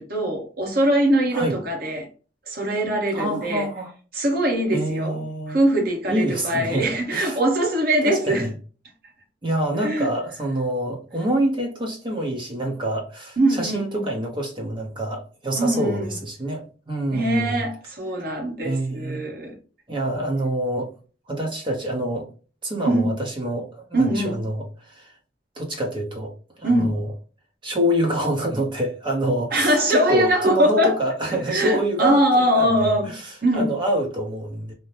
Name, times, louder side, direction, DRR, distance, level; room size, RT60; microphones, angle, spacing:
voice 1, 0.0-2.1 2.5-3.7 4.1-5.2 5.5-8.5 9.8-10.1 13.4-14.0 15.5-16.1 17.1-19.6 22.8-23.1 23.9-24.4 26.6-27.0 29.5-31.0 31.5-33.1 33.4-33.7, right 1 dB, 55° right, 1.0 m, -22 dB
voice 2, 3.1-3.9 4.7-5.6 6.1-7.4 8.0-8.5 9.4-17.6 18.6-19.2 19.9-20.9 21.3-22.3 22.6-25.1 25.6-27.1 27.6-34.7, right 1 dB, 25° right, 0.7 m, -26 dB
2.8 x 2.1 x 3.1 m
head